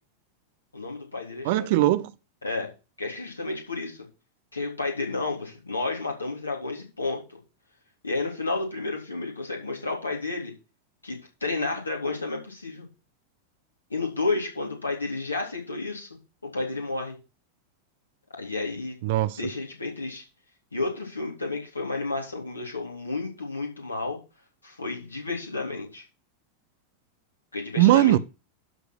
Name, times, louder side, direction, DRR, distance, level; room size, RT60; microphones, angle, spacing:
voice 1, 0.7-1.7 2.4-2.7 3.0-4.0 4.5-7.2 8.0-10.5 11.0-12.9 13.9-16.1 16.4-17.2 18.4-19.0 19.4-20.2 20.7-24.2 24.6-26.0 27.5-28.2, left 3 dB, 80° left, 3.7 m, -31 dB
voice 2, 1.4-2.1 19.0-19.4 27.8-28.2, right 15 dB, 50° right, 0.7 m, -20 dB
12.0 x 4.9 x 6.2 m
figure-of-eight pair, 90°, 0 cm